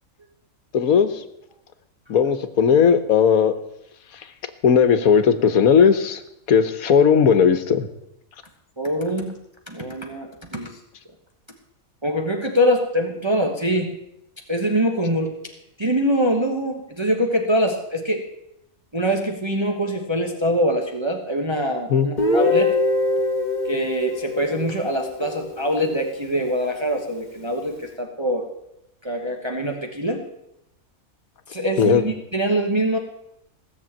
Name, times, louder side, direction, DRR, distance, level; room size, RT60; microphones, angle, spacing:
voice 1, 0.7-1.2 2.1-3.5 4.1-4.3 4.6-6.2 6.5-7.9 21.9-22.1 31.8-32.0, left 7 dB, 90° left, 10 dB, 1.5 m, -17 dB
voice 2, 8.8-9.3 9.7-10.7 12.0-13.9 14.5-15.3 15.8-18.2 18.9-22.7 23.6-28.5 29.0-30.2 31.5-33.0, equal, 20° right, 2 dB, 1.4 m, -23 dB
Guitar, 22.2-26.0, left 3 dB, 35° left, 1.7 m, -24 dB
17.0 x 6.9 x 8.7 m, 0.81 s
omnidirectional pair, 1.5 m